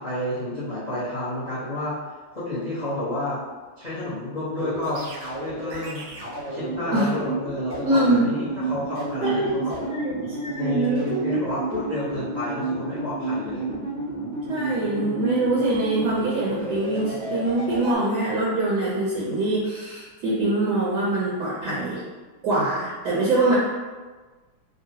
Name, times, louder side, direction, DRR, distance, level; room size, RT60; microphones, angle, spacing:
voice 1, 0.0-1.9 2.3-3.4 3.8-5.0 5.4-6.0 6.5-8.4 8.7-9.9 10.6-13.7, left 1 dB, 55° left, -11 dB, 0.4 m, -30 dB
sound 1, 4.6-17.9, right 3 dB, 85° right, 0.6 m, -31 dB
voice 2, 7.8-8.3 9.2-11.4 14.5-22.0 22.4-23.6, right 2 dB, 70° right, -7 dB, 1.0 m, -24 dB
3.7 x 2.0 x 2.7 m, 1.3 s
omnidirectional pair, 2.1 m